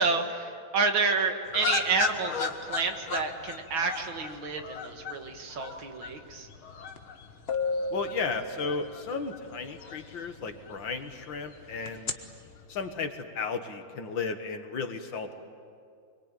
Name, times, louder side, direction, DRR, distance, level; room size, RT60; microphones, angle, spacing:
voice 1, 0.0-6.5, right 4 dB, 75° right, 5 dB, 2.6 m, -29 dB
sound 1, 1.5-13.0, left 6 dB, 90° left, 2.5 m, -39 dB
sound 2, 7.0-7.1 7.5-9.2 11.9-12.1, left 3 dB, 35° left, 1.3 m, -32 dB
voice 2, 7.9-12.1 12.7-15.3, left 5 dB, 65° left, 6 dB, 2.3 m, -34 dB
25.5 x 23.0 x 9.1 m, 2.3 s
omnidirectional pair, 2.2 m